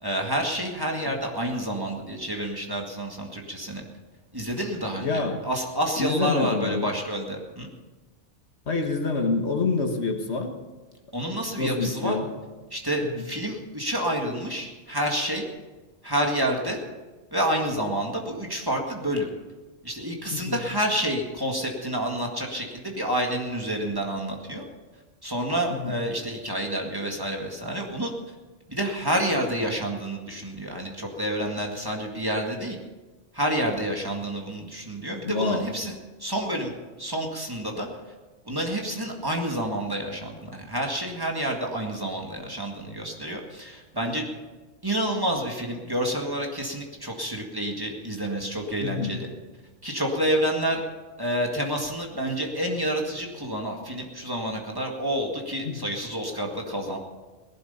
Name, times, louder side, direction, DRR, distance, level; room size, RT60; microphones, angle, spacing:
voice 1, 0.0-3.8 4.3-7.7 11.1-12.2 12.7-15.5 16.0-16.8 17.3-19.3 19.8-24.6 25.2-28.1 28.7-32.8 33.3-35.9 36.2-36.7 37.0-37.9 38.5-44.3 44.8-49.3 49.8-50.8 51.2-57.0, right 1 dB, 20° right, 0 dB, 1.9 m, -29 dB
voice 2, 5.0-5.4 6.0-6.9 8.7-10.5 11.6-12.3 13.1-13.2 20.3-20.6 25.7-25.9 35.2-35.6 48.8-49.2 55.6-55.8, left 3 dB, 70° left, 5 dB, 1.7 m, -27 dB
18.0 x 12.0 x 5.6 m, 1.2 s
omnidirectional pair, 1.2 m